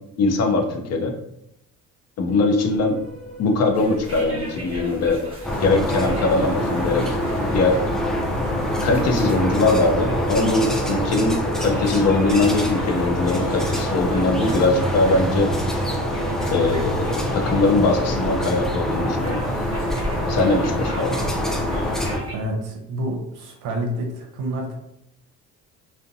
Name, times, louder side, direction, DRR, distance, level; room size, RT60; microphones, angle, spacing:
voice 1, 0.2-1.1 2.2-3.0 3.4-5.2 5.6-7.1 7.5-7.8 8.8-15.5 16.5-19.4 20.3-21.2, left 3 dB, 50° left, 4 dB, 0.6 m, -21 dB
sound 1, 2.3-18.6, right 2 dB, 30° left, 1.1 m, -38 dB
sound 2, 3.7-22.3, right 1 dB, 15° right, 0.9 m, -38 dB
sound 3, 5.4-22.2, left 1 dB, ahead, 0.3 m, -25 dB
voice 2, 22.3-24.7, right 1 dB, 70° right, 1 dB, 0.7 m, -28 dB
2.6 x 2.1 x 2.5 m, 0.82 s
supercardioid pair, 85°, 34 cm